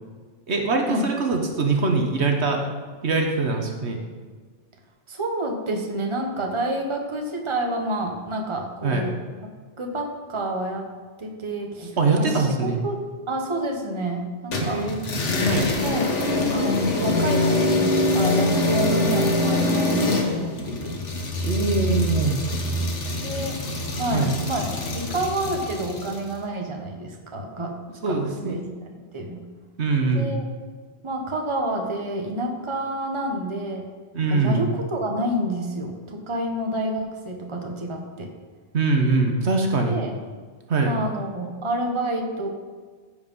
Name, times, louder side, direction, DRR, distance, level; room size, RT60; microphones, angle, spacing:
voice 1, 0.5-2.6 3.0-4.0 8.8-9.1 12.0-12.8 14.6-15.7 21.4-22.4 24.1-24.3 28.0-28.6 29.8-30.3 34.1-34.6 38.7-40.0 40.7-40.9, right 3 dB, 70° right, 3 dB, 1.4 m, -23 dB
voice 2, 5.1-9.2 9.8-10.9 11.2-13.0 13.3-14.8 15.8-16.1 16.5-21.0 23.2-23.6 23.9-27.8 28.1-28.6 29.1-29.4 30.1-30.5 31.0-33.8 34.3-38.3 39.9-40.1 40.9-42.5, right 1 dB, 25° right, 2 dB, 1.2 m, -29 dB
sound 1, 14.5-26.3, left 2 dB, 85° left, 1.7 m, -24 dB
15.0 x 5.2 x 5.4 m, 1.5 s
omnidirectional pair, 1.2 m